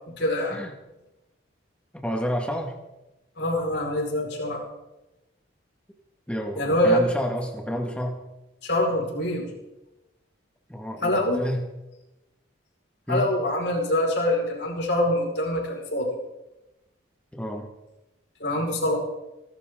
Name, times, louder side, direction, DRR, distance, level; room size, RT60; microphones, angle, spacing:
voice 1, 0.2-0.6 3.4-4.6 6.6-7.0 8.6-9.5 11.0-11.4 13.1-16.2 18.4-19.0, left 1 dB, 60° left, -1 dB, 5.2 m, -24 dB
voice 2, 1.9-2.8 6.3-8.2 10.7-11.6 13.1-13.3 17.3-17.7, equal, 5° left, 2 dB, 1.9 m, -29 dB
26.0 x 12.0 x 3.9 m, 0.98 s
head